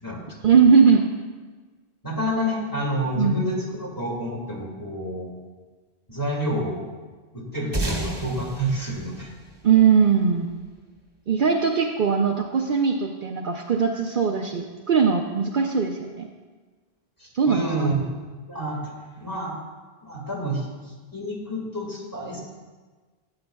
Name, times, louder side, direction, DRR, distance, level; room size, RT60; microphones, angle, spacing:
voice 1, 0.4-1.1 3.2-3.4 9.6-10.5 11.3-16.3 17.3-18.0, right 6 dB, 60° right, 2 dB, 0.7 m, -20 dB
voice 2, 2.0-5.3 6.1-6.8 7.3-9.3 17.2-18.0 18.5-19.5 20.0-22.4, equal, 20° left, -3 dB, 1.9 m, -29 dB
sound 1, 7.7-10.5, right 2 dB, 25° right, 1.1 m, -31 dB
13.5 x 8.8 x 2.3 m, 1.4 s
omnidirectional pair, 1.1 m